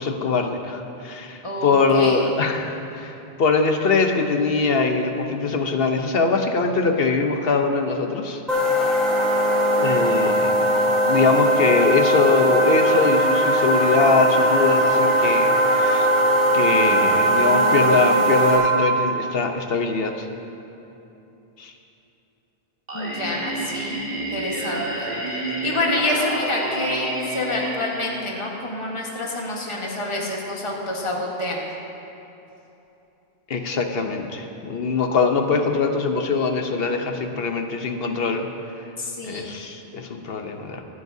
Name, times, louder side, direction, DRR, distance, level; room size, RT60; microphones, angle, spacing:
voice 1, 0.0-8.4 9.8-10.5 11.1-16.1 16.5-20.3 21.6-21.7 33.5-38.5 39.3-40.8, left 4 dB, 65° left, 5 dB, 1.1 m, -22 dB
voice 2, 1.4-2.2 22.9-31.6 39.0-39.5, left 1 dB, 30° left, -2 dB, 1.5 m, -28 dB
sound 1, 8.5-18.6, right 1 dB, ahead, 3.0 m, -19 dB
Singing, 22.9-28.8, right 1 dB, 40° right, 1.8 m, -29 dB
24.5 x 9.7 x 2.8 m, 2.9 s
omnidirectional pair, 1.1 m